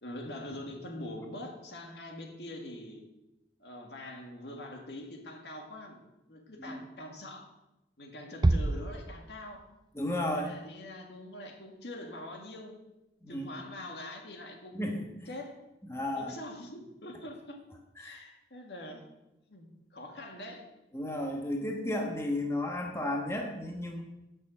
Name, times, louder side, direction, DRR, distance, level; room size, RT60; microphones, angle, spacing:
voice 1, 0.0-3.1 3.6-6.0 6.3-7.5 8.0-9.7 10.3-12.8 13.3-15.6 16.1-17.6 18.0-19.1 19.5-20.6, left 1 dB, 75° left, 2 dB, 1.9 m, -44 dB
Bass drum, 8.4-9.8, right 2 dB, 25° right, 0.3 m, -28 dB
voice 2, 9.9-10.5 13.2-13.6 14.7-15.0 15.9-16.3 18.0-18.1 20.9-24.0, left 1 dB, 15° left, 1 dB, 1.1 m, -33 dB
9.0 x 6.3 x 7.3 m, 0.94 s
head